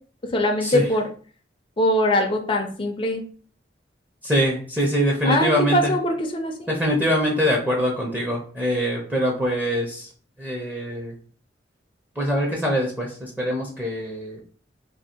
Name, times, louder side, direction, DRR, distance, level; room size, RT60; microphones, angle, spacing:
voice 1, 0.3-1.0 1.8-3.2 5.3-6.7, left 1 dB, 30° left, 3 dB, 0.5 m, -22 dB
voice 2, 4.2-6.0 6.7-10.1 10.4-11.2 12.2-14.4, equal, 10° right, -1 dB, 0.6 m, -23 dB
2.7 x 2.7 x 4.3 m, 0.43 s
head